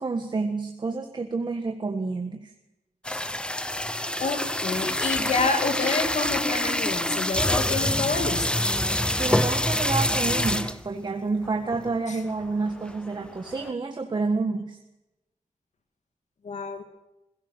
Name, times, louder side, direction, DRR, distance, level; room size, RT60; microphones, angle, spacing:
voice 1, 0.0-2.5 9.1-14.8, right 3 dB, 35° right, 4 dB, 1.6 m, -29 dB
sound 1, 3.0-10.9 11.4-11.5 11.7-12.0 12.4-13.7, left 1 dB, 5° left, 0.8 m, -26 dB
voice 2, 4.2-8.6 12.1-12.2 16.4-16.8, left 4 dB, 65° left, 5 dB, 2.2 m, -28 dB
22.0 x 16.5 x 7.7 m, 0.94 s
wide cardioid pair, 180°, 13 cm